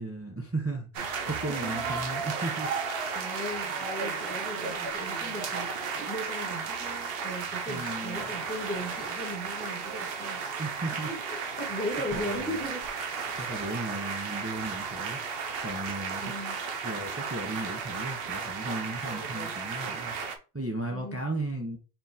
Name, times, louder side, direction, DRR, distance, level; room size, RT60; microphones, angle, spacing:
voice 1, 0.0-2.7 7.7-8.4 10.6-11.1 12.0-12.6 13.4-15.2 15.6-16.4 16.8-20.1 20.5-21.8, right 2 dB, 15° right, 0.6 m, -35 dB
sound 1, 0.9-20.4, right 5 dB, 70° right, 0.9 m, -34 dB
voice 2, 1.5-1.9 3.1-10.4 11.0-12.8 13.5-13.6 16.2-16.6 20.9-21.2, equal, 10° left, 1.3 m, -38 dB
Fire, 4.8-15.8, left 1 dB, 55° left, 1.6 m, -51 dB
4.5 x 3.7 x 2.6 m
omnidirectional pair, 1.1 m